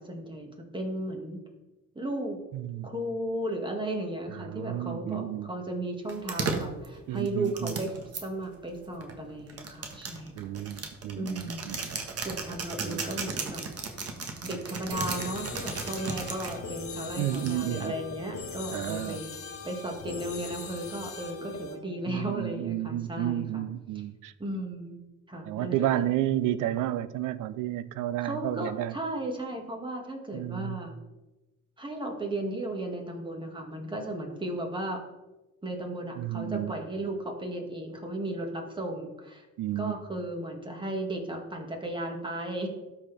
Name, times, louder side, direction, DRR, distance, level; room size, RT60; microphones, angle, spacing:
voice 1, 0.0-1.4 2.0-2.4 2.8-10.5 11.2-11.8 12.2-13.6 14.4-19.3 19.6-23.6 23.9-24.0 24.4-25.0 25.3-26.1 28.2-30.9 31.8-35.0 35.6-39.5 39.8-42.7, right 1 dB, 15° right, 1.8 m, -35 dB
voice 2, 2.5-2.9 4.3-5.5 7.1-7.8 10.4-11.8 12.8-13.0 17.2-18.0 18.7-19.2 22.1-24.3 25.4-29.0 30.3-30.8 36.2-36.8 39.6-39.9, right 13 dB, 85° right, 0.5 m, -31 dB
sound 1, 6.1-8.2 9.0-16.6 17.3-17.8, right 4 dB, 50° right, 1.4 m, -35 dB
sound 2, 14.9-21.8, left 4 dB, 50° left, 1.1 m, -40 dB
12.5 x 4.3 x 3.4 m
cardioid pair, 90°, 30 cm